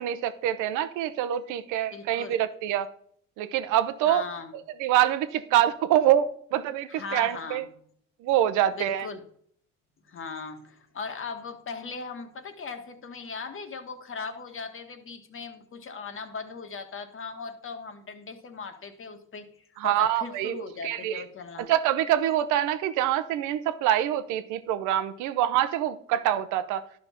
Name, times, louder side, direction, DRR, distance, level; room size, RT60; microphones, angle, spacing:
voice 1, 0.0-2.9 3.4-4.2 4.8-7.6 8.2-9.1 19.8-21.2 21.7-26.8, right 11 dB, 90° right, 13 dB, 0.8 m, -25 dB
voice 2, 1.9-2.4 4.0-4.6 6.9-7.7 8.7-9.2 10.0-21.7, left 4 dB, 45° left, 7 dB, 1.6 m, -39 dB
11.5 x 5.3 x 5.8 m, 0.63 s
cardioid pair, 90°, 30 cm